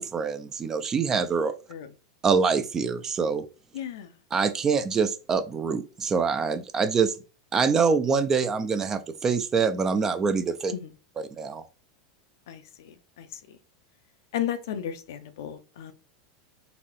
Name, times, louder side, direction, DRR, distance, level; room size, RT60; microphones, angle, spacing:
voice 1, 0.0-1.5 2.2-3.4 4.3-7.1 7.5-10.7 11.4-11.6, right 5 dB, 25° right, 0.5 m, -25 dB
voice 2, 3.7-4.2 10.7-10.9 12.5-13.6 14.3-15.9, left 10 dB, 60° left, 0.5 m, -34 dB
4.1 x 2.6 x 2.9 m
figure-of-eight pair, 85°, 2 cm